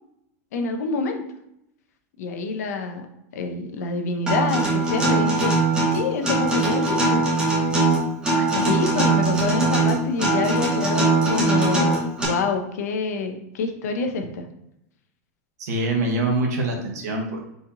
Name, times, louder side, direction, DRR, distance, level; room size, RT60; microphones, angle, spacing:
voice 1, 0.5-1.2 2.2-3.1 3.3-5.5 5.9-7.2 8.4-14.5, left 3 dB, 75° left, 5 dB, 0.7 m, -27 dB
Acoustic guitar, 4.3-12.2, right 2 dB, 10° right, 0.8 m, -21 dB
voice 2, 15.6-17.4, right 2 dB, 75° right, 1 dB, 1.2 m, -24 dB
4.2 x 2.9 x 3.7 m, 0.82 s
supercardioid pair, 175°, 9 cm